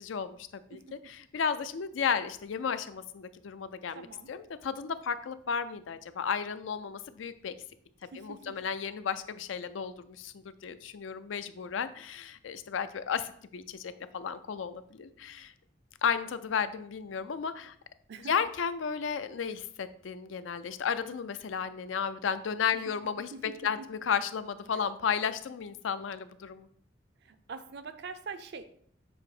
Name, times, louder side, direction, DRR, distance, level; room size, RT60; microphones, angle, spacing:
voice 1, 0.0-7.5 8.2-15.5 16.0-17.7 18.3-23.3 23.6-26.7, left 6 dB, 75° left, 12 dB, 0.4 m, -33 dB
voice 2, 3.9-4.3 8.1-8.6 18.1-18.5 23.2-23.9 24.7-24.8 27.2-28.7, right 4 dB, 60° right, 11 dB, 0.5 m, -44 dB
7.1 x 2.8 x 4.9 m, 0.63 s
head